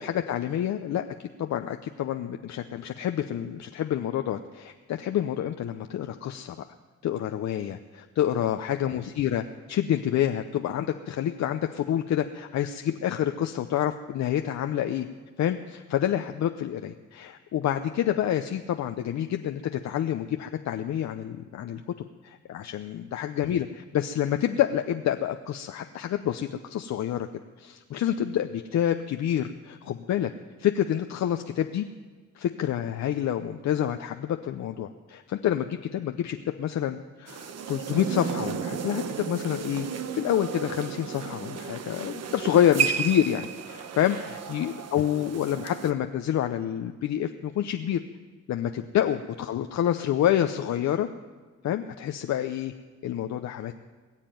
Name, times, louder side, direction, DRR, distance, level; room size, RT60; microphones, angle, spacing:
voice 1, 0.0-6.6 7.0-15.1 15.4-21.8 22.2-27.3 27.6-30.3 30.6-31.9 32.4-39.9 40.1-48.0 48.5-51.1 51.6-52.7 53.0-53.7, left 10 dB, 65° left, 6 dB, 0.8 m, -28 dB
sound 1, 37.3-45.9, right 7 dB, 55° right, 1.1 m, -33 dB
21.0 x 7.5 x 9.1 m, 1.4 s
cardioid pair, 90°, 30 cm